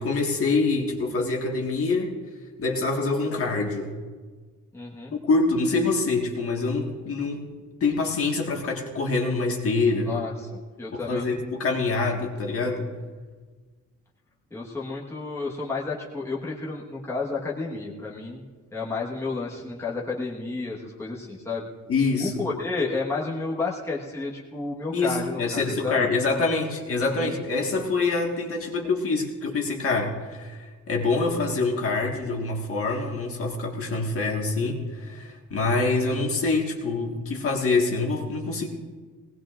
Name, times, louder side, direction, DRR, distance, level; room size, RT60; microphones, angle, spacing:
voice 1, 0.0-2.1 2.6-4.0 5.2-7.5 7.8-10.2 10.9-12.9 21.9-22.3 24.9-38.7, left 3 dB, 45° left, 0 dB, 1.8 m, -25 dB
voice 2, 4.7-5.1 10.0-11.4 14.5-18.4 18.7-21.7 22.2-26.1 27.0-27.3, left 3 dB, 10° left, -4 dB, 1.4 m, -31 dB
20.0 x 18.5 x 2.5 m, 1.5 s
cardioid pair, 165°, 31 cm